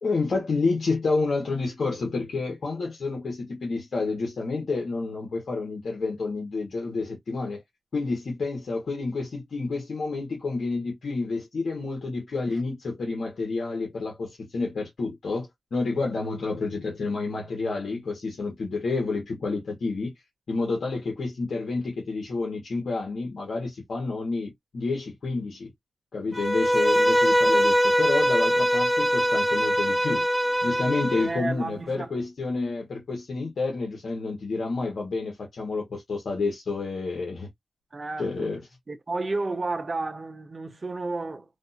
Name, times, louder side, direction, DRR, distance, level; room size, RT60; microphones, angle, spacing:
voice 1, 0.0-7.6 7.9-20.1 20.5-25.7 26.1-30.2 30.6-37.5 38.2-38.7, left 3 dB, 70° left, 1.4 m, -29 dB
Bowed string instrument, 26.3-31.3, equal, ahead, 0.6 m, -22 dB
voice 2, 31.2-32.1 37.9-38.5 38.9-41.4, right 3 dB, 35° right, 0.6 m, -31 dB
3.5 x 2.6 x 2.8 m
wide cardioid pair, 105°, 0 cm